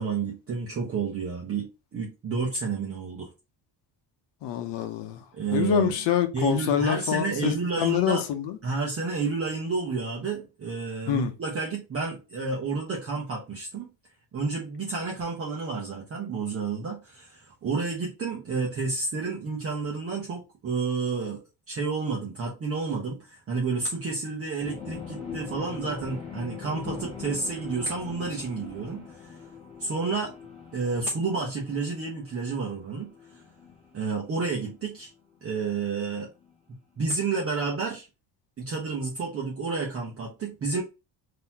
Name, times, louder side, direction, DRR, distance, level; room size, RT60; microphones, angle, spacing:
voice 1, 0.0-3.3 5.3-5.9 6.3-8.3 8.6-13.9 14.3-21.4 21.7-29.4 29.8-30.3 30.7-33.1 33.9-35.1 35.4-36.3 37.0-38.1 38.6-40.8, right 4 dB, 30° right, 0.9 m, -30 dB
voice 2, 4.4-5.2 5.5-8.6 11.1-11.3, left 9 dB, 70° left, 0.9 m, -26 dB
sound 1, 24.6-36.5, left 6 dB, 15° left, 1.7 m, -42 dB
3.9 x 2.9 x 2.8 m
cardioid pair, 170°, 44 cm